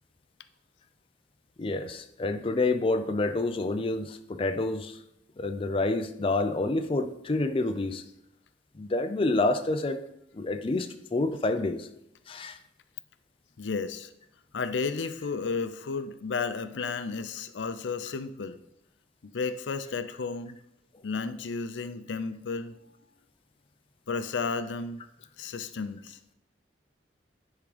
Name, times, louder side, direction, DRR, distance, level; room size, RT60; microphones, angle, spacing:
voice 1, 1.6-5.0 5.4-8.0 8.8-10.0 10.3-11.9 12.3-12.6, left 2 dB, 30° left, 0.5 m, -28 dB
voice 2, 13.6-14.1 14.5-18.6 19.3-20.6 21.0-22.7 24.1-25.0 25.4-26.2, left 4 dB, 80° left, 0.5 m, -32 dB
10.5 x 3.7 x 4.9 m
head